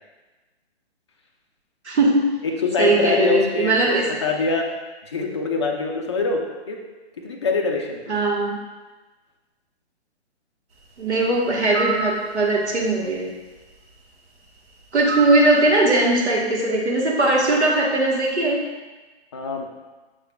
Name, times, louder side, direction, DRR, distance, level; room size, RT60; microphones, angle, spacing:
voice 1, 1.8-2.3 2.8-4.0 8.1-8.6 11.0-13.3 14.9-18.6, right 2 dB, 80° right, -2 dB, 1.3 m, -19 dB
voice 2, 2.6-3.7 4.2-4.7 5.1-6.4 6.7-6.8 7.2-8.1 19.3-19.7, left 4 dB, 25° left, 1 dB, 0.3 m, -24 dB
sound 1, 11.7-12.1 15.1-15.5, right 4 dB, 65° right, 0.9 m, -26 dB
6.7 x 3.3 x 2.3 m, 1.3 s
hypercardioid pair, 140°, 33 cm